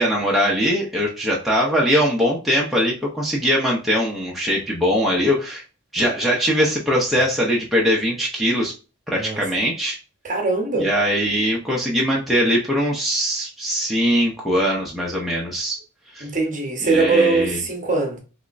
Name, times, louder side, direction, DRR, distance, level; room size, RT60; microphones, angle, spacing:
voice 1, 0.0-5.6 5.9-8.7 9.1-10.0 10.8-15.8 16.1-16.3 16.8-17.6, equal, ahead, 0.6 m, -21 dB
voice 2, 9.1-9.4 10.2-10.9 16.2-18.2, right 3 dB, 35° right, 0.8 m, -21 dB
3.4 x 3.0 x 2.5 m
head